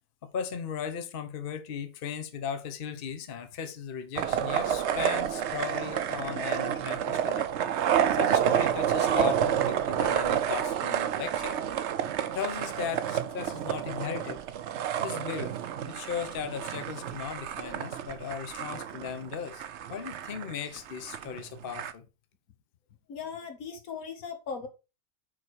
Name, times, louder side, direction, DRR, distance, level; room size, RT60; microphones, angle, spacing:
voice 1, 0.3-11.6 12.3-14.4 15.0-22.0, left 7 dB, 45° left, 0.9 m, -37 dB
sound 1, 4.2-21.9, right 9 dB, 65° right, 0.8 m, -29 dB
voice 2, 23.1-24.7, left 6 dB, 80° left, 1.7 m, -38 dB
6.1 x 4.6 x 4.6 m
omnidirectional pair, 1.5 m